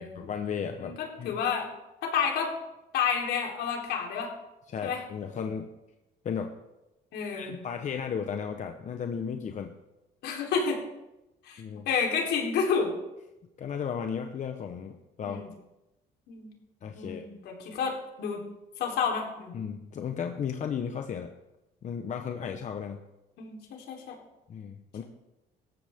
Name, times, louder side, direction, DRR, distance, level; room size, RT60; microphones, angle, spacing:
voice 1, 0.0-1.4 4.7-5.7 6.2-6.5 7.3-9.7 11.6-11.9 13.6-15.4 16.8-17.2 19.5-21.3 21.8-23.0 24.5-25.0, left 7 dB, 45° left, 5 dB, 1.1 m, -35 dB
voice 2, 0.8-1.7 2.0-2.5 2.9-4.3 4.8-5.0 7.1-7.6 10.2-10.8 11.5-12.9 15.2-15.5 16.3-16.5 16.9-18.4 18.8-19.5 23.4-24.2, left 6 dB, 75° left, 0 dB, 3.8 m, -30 dB
18.5 x 14.0 x 3.7 m, 0.95 s
cardioid pair, 110°, 17 cm